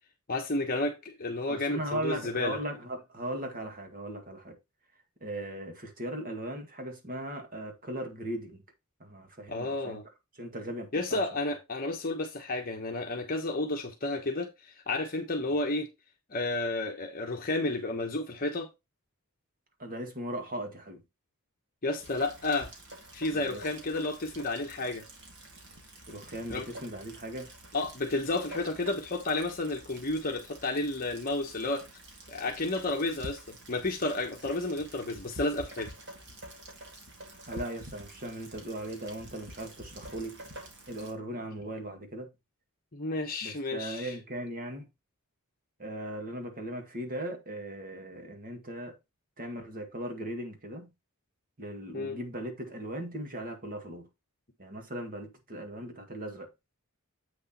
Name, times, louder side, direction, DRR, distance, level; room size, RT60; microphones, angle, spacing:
voice 1, 0.3-2.6 9.5-10.0 10.9-15.9 16.3-18.7 21.8-22.7 23.1-25.0 26.5-26.7 27.7-31.8 32.3-35.9 42.9-44.1 51.9-52.2, left 2 dB, 40° left, 1.1 m, -31 dB
voice 2, 1.5-4.6 5.2-8.6 9.0-10.0 10.4-11.2 19.8-21.0 23.3-23.7 26.1-27.5 37.5-40.4 40.9-42.3 43.4-44.9 45.8-49.0 49.4-50.9 51.6-54.1 54.6-56.5, right 1 dB, 40° right, 2.1 m, -38 dB
Rain, 22.0-41.1, right 1 dB, 55° right, 2.6 m, -48 dB
8.1 x 6.4 x 3.0 m
head